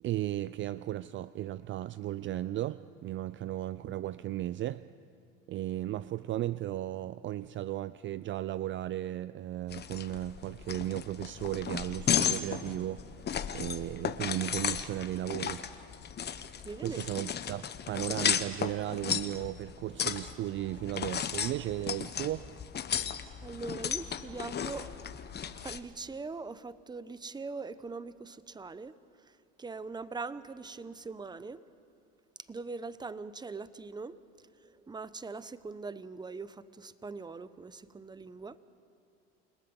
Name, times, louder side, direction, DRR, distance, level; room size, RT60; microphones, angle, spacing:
voice 1, 0.0-4.8 5.5-13.0 13.5-15.6 16.8-22.5, right 14 dB, 40° right, 0.5 m, -35 dB
sound 1, 9.7-25.8, left 8 dB, 35° left, 1.3 m, -35 dB
voice 2, 16.6-17.0 23.4-24.9 25.6-31.6 32.4-34.2 34.6-38.6, right 4 dB, 15° right, 0.9 m, -42 dB
29.5 x 18.5 x 7.2 m
supercardioid pair, 95°, 31 cm